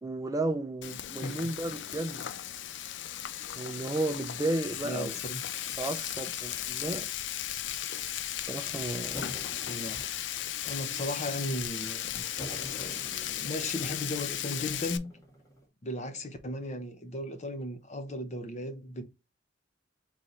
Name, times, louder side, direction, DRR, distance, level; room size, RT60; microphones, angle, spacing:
voice 1, 0.0-2.3 3.5-5.2 5.8-7.1 8.4-9.3, right 2 dB, 20° right, 0.5 m, -33 dB
Frying (food), 0.8-15.0, left 11 dB, 70° left, 0.4 m, -36 dB
voice 2, 1.2-1.5 4.8-5.4 9.7-10.1 10.6-12.2 12.7-13.1 13.4-15.1 15.8-19.0, left 1 dB, 40° left, 0.7 m, -36 dB
sound 1, 9.1-10.6 11.0-11.7 12.4-15.6, right 1 dB, 15° left, 1.4 m, -47 dB
3.9 x 3.1 x 4.2 m
head